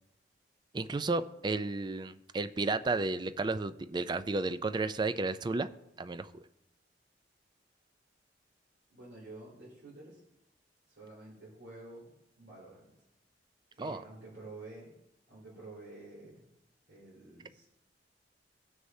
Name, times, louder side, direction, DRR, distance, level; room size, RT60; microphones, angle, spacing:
voice 1, 0.7-5.7 6.0-6.4 13.8-14.0, right 3 dB, 25° right, 12 dB, 0.4 m, -32 dB
voice 2, 8.9-10.2 10.9-12.9 13.7-15.0 15.3-16.5 16.9-17.6, right 2 dB, 75° right, -7 dB, 2.9 m, -50 dB
17.5 x 6.4 x 2.7 m, 0.89 s
head